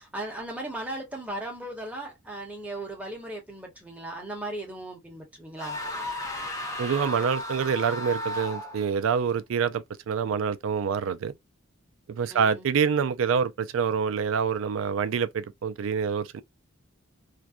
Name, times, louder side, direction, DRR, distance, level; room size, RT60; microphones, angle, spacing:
voice 1, 0.0-5.8 12.3-12.6, right 1 dB, 5° right, 0.9 m, -37 dB
sound 1, 5.6-8.9, left 1 dB, 15° left, 0.7 m, -34 dB
voice 2, 6.8-11.3 12.1-16.4, right 6 dB, 75° right, 0.4 m, -26 dB
2.5 x 2.1 x 2.2 m
head